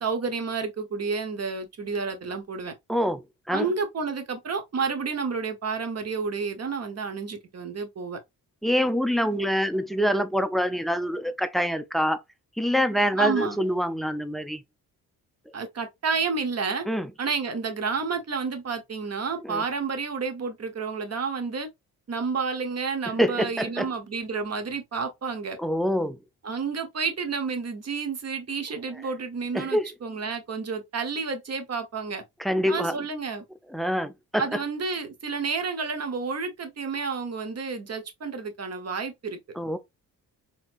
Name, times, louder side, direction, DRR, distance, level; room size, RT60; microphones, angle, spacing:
voice 1, 0.0-2.7 3.5-8.2 13.2-13.6 15.5-16.9 17.2-21.7 22.1-25.6 26.4-32.2 32.7-33.4 34.4-39.4, right 5 dB, 40° right, 1.2 m, -30 dB
voice 2, 2.9-3.7 8.6-12.2 12.6-14.6 16.9-17.1 19.4-19.6 23.2-23.9 25.6-26.2 29.5-29.9 32.4-33.0 33.7-34.4 39.6-39.8, equal, ahead, 0.5 m, -25 dB
4.1 x 3.0 x 2.5 m
cardioid pair, 80°, 39 cm